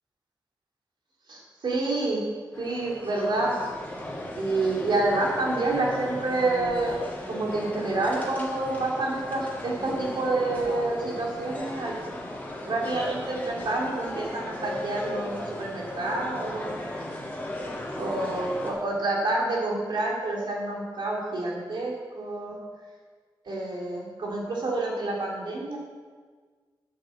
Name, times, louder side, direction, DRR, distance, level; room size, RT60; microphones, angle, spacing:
voice 1, 1.3-2.2 2.6-3.6 4.4-7.0 7.3-11.9 12.6-16.7 18.0-22.6 23.4-25.8, right 2 dB, 75° right, -3 dB, 3.6 m, -28 dB
sound 1, 2.5-18.7, left 1 dB, 20° left, 2.5 m, -37 dB
11.0 x 8.1 x 7.8 m, 1.5 s
wide cardioid pair, 155°, 8 cm